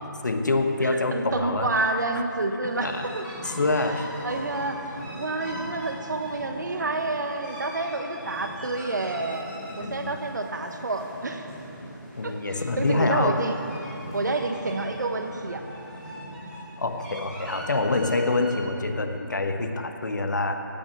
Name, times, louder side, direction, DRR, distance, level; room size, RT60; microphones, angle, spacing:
voice 1, 0.2-1.7 2.1-2.2 2.8-3.1 3.4-4.1 9.8-10.2 12.2-13.4 16.8-20.6, left 2 dB, 60° left, 6 dB, 1.2 m, -26 dB
voice 2, 0.8-3.3 3.7-3.9 4.2-9.5 9.8-11.5 12.2-13.5 14.1-15.6, right 2 dB, 55° right, 5 dB, 1.3 m, -29 dB
sound 1, 2.7-18.5, equal, ahead, 2.3 m, -40 dB
16.5 x 6.0 x 9.1 m, 3.0 s
figure-of-eight pair, 170°, 11 cm